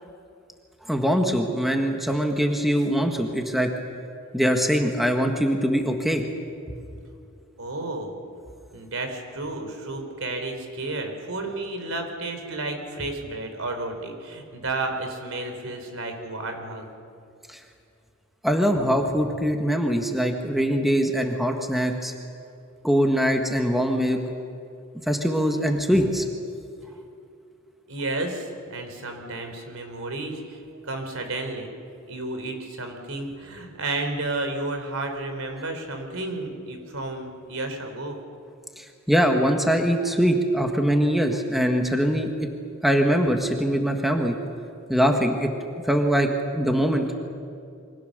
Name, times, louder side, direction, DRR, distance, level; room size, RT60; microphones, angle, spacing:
voice 1, 0.9-3.7 4.3-6.2 17.5-17.6 18.4-22.1 22.8-24.2 25.1-26.2 38.8-42.5 42.8-44.3 44.9-45.5 45.8-47.1, equal, ahead, 3 dB, 1.7 m, -22 dB
voice 2, 7.6-8.2 8.7-16.9 27.9-31.7 32.1-38.2, right 2 dB, 75° right, 5 dB, 3.9 m, -32 dB
27.5 x 24.0 x 6.8 m, 2.5 s
head